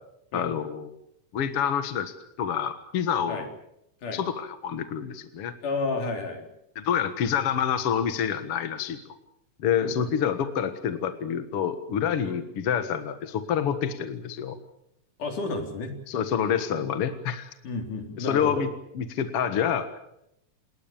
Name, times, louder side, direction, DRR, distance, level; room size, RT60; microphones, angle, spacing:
voice 1, 0.3-0.9 1.3-3.5 4.1-5.5 6.8-9.2 9.6-14.6 16.1-17.5 18.2-18.7 19.0-19.9, left 8 dB, 55° left, 9 dB, 2.2 m, -27 dB
voice 2, 5.6-6.4 9.8-10.1 12.2-12.4 15.2-15.9 17.6-18.6, left 3 dB, 75° left, 4 dB, 5.3 m, -31 dB
29.0 x 19.5 x 7.2 m, 0.78 s
omnidirectional pair, 3.6 m